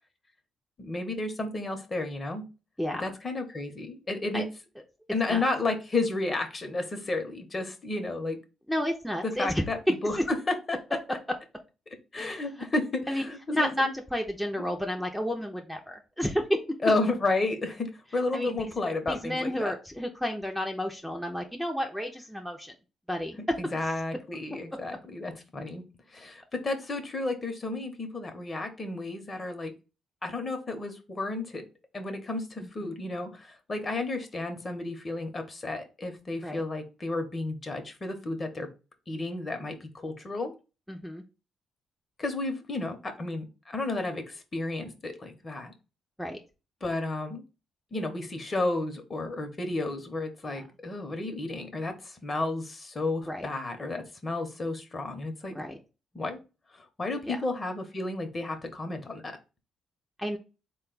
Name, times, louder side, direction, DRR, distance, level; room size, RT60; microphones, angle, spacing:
voice 1, 0.8-2.5 3.0-4.5 5.1-8.4 9.2-9.8 10.0-11.2 12.1-13.9 16.8-19.7 23.6-25.8 26.1-29.7 30.2-31.6 31.9-38.7 39.1-40.5 42.2-45.7 46.8-47.4 47.9-55.5 56.1-56.4 56.7-59.4, left 2 dB, 30° left, 6 dB, 0.9 m, -32 dB
voice 2, 2.8-3.1 4.3-4.5 5.3-5.4 8.7-9.6 10.2-10.3 12.2-12.4 13.1-13.3 13.5-16.8 18.3-18.6 19.1-22.7 23.1-23.6 32.6-32.7 36.4-36.6 40.9-41.2 46.2-46.4 50.4-50.6 53.3-53.5 55.5-55.8 57.3-57.4 60.2-60.4, equal, ahead, 1 dB, 0.6 m, -31 dB
3.9 x 2.3 x 3.8 m, 0.30 s
cardioid pair, 90°, 0 cm